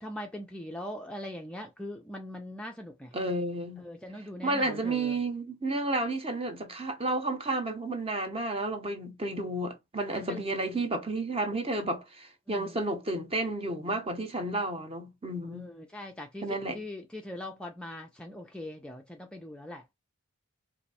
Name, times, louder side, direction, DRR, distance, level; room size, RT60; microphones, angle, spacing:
voice 1, 0.0-3.1 3.8-5.2 10.1-10.4 12.5-12.8 15.4-19.8, left 1 dB, 5° left, 0.4 m, -41 dB
voice 2, 3.1-3.8 4.4-15.7 16.4-16.8, right 2 dB, 25° right, 0.8 m, -31 dB
4.2 x 2.6 x 4.1 m
head